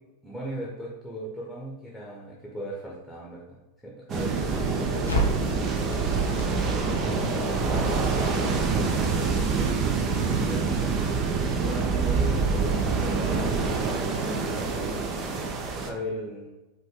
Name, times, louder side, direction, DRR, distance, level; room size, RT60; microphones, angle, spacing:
voice 1, 0.2-3.6 3.8-5.5 5.9-7.3 7.6-9.7 10.4-11.0 11.4-14.1 14.5-15.1 15.7-16.5, right 1 dB, ahead, -5 dB, 1.0 m, -38 dB
sound 1, 4.1-15.9, right 4 dB, 30° right, 0.6 m, -26 dB
Crackle, 5.1-11.2, equal, 75° left, 0.9 m, -36 dB
5.1 x 2.6 x 3.7 m, 1.1 s
figure-of-eight pair, 90°, 0 cm